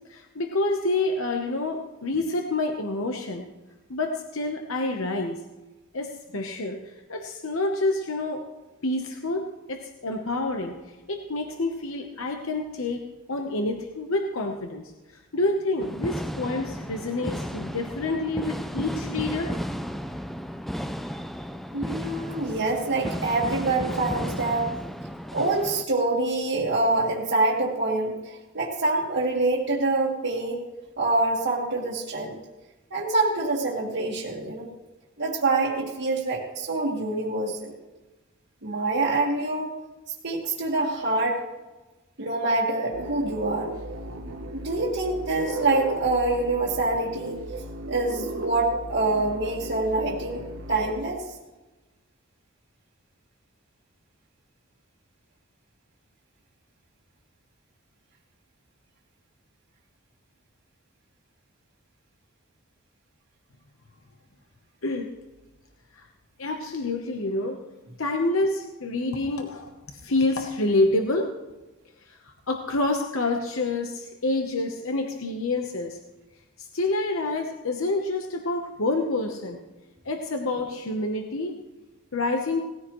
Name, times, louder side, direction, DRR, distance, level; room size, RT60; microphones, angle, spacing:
voice 1, 0.1-3.5 3.9-5.4 5.9-8.4 8.8-19.5 64.8-65.1 65.9-66.1 66.4-67.6 68.0-71.3 72.1-76.0 76.6-79.6 80.0-81.6 82.1-82.6, left 2 dB, 70° left, 3 dB, 1.0 m, -28 dB
sound 1, 15.8-25.9, equal, ahead, 0.4 m, -34 dB
voice 2, 21.7-24.8 25.3-30.7 31.0-32.4 32.9-34.7 35.2-37.7 38.6-39.7 40.2-41.4 42.2-43.7 44.5-47.4 47.9-51.2, right 2 dB, 55° right, -5 dB, 1.8 m, -26 dB
sound 2, 42.9-51.0, right 2 dB, 70° right, 1.1 m, -36 dB
18.5 x 14.5 x 3.1 m, 1.1 s
head